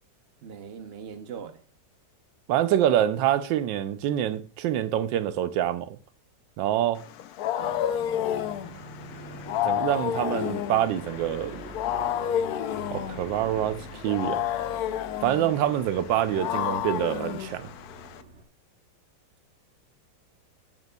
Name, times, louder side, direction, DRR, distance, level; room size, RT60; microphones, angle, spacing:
voice 1, 0.4-1.6 7.6-7.8, right 7 dB, 50° right, 0.7 m, -40 dB
voice 2, 2.5-6.0 6.6-7.0 9.6-11.6 12.9-14.4 15.2-17.7, right 11 dB, 85° right, 1.3 m, -26 dB
Wild animals, 7.0-18.2, left 10 dB, 70° left, 0.9 m, -31 dB
sound 1, 7.6-18.4, right 2 dB, 35° right, 1.2 m, -45 dB
9.2 x 8.0 x 2.3 m
omnidirectional pair, 2.0 m